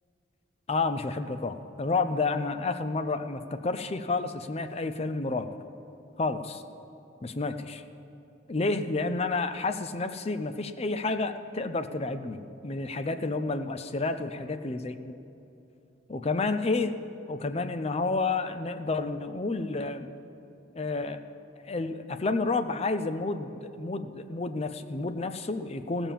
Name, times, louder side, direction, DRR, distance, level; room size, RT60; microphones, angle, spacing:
voice 1, 0.7-5.5 6.2-6.6 7.2-7.8 8.5-15.2 16.1-16.9 17.3-20.1 20.7-21.2 21.6-26.1, left 3 dB, 30° left, 9 dB, 0.5 m, -30 dB
16.0 x 6.9 x 7.4 m, 2.9 s
head